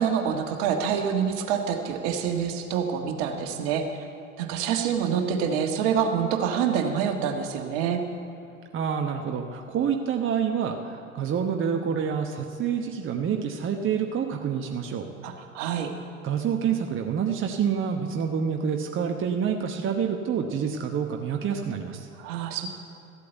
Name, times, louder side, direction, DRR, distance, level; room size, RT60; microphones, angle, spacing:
voice 1, 0.0-3.8 4.4-8.0 15.2-15.9 22.2-22.8, right 7 dB, 60° right, 4 dB, 1.6 m, -26 dB
voice 2, 8.7-15.1 16.2-22.1, right 7 dB, 30° right, 3 dB, 1.0 m, -27 dB
14.5 x 8.2 x 8.2 m, 2.7 s
hypercardioid pair, 75°, 39 cm